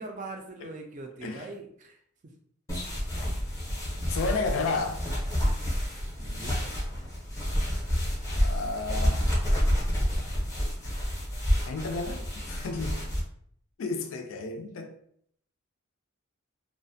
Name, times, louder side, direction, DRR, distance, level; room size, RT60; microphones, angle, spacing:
voice 1, 0.0-1.9 6.2-6.7, right 2 dB, 35° right, 0.4 m, -41 dB
sound 1, 2.7-13.2, equal, 15° left, 0.6 m, -29 dB
voice 2, 4.1-5.1 8.4-9.3 11.7-13.1 13.8-14.9, left 3 dB, 65° left, 0.3 m, -32 dB
2.4 x 2.1 x 2.6 m
head